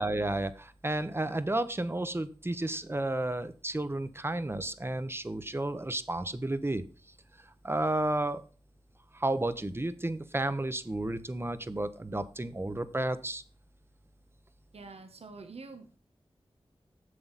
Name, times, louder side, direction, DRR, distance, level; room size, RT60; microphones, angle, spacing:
voice 1, 0.0-6.8 7.6-8.4 9.1-13.4, right 1 dB, 25° right, 12 dB, 0.9 m, -32 dB
voice 2, 14.7-16.0, right 4 dB, 90° right, 6 dB, 1.4 m, -46 dB
7.7 x 7.6 x 4.1 m, 0.36 s
wide cardioid pair, 80°, 10 cm